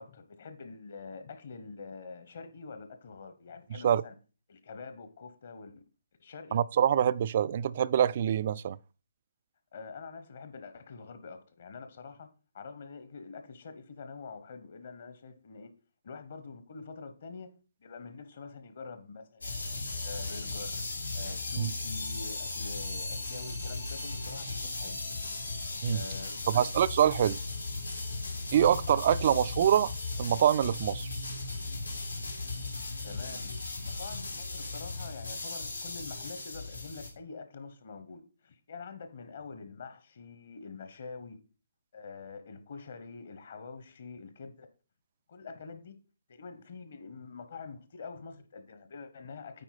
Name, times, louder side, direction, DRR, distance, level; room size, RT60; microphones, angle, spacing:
voice 1, 0.0-4.1 4.5-5.8 6.2-6.6 9.7-15.7 16.0-17.5 17.8-20.8 21.1-25.0 25.9-26.7 29.3-29.4 33.0-41.4 41.9-44.7 45.3-45.9 46.3-49.6, left 4 dB, 55° left, 1.2 m, -46 dB
voice 2, 6.5-8.8 21.6-21.7 25.8-26.0 26.5-27.4 28.5-29.9 30.2-31.1, right 9 dB, 45° right, 0.3 m, -25 dB
sound 1, 19.4-37.1, left 3 dB, 90° left, 2.5 m, -37 dB
8.9 x 4.4 x 4.1 m
figure-of-eight pair, 145°, 0 cm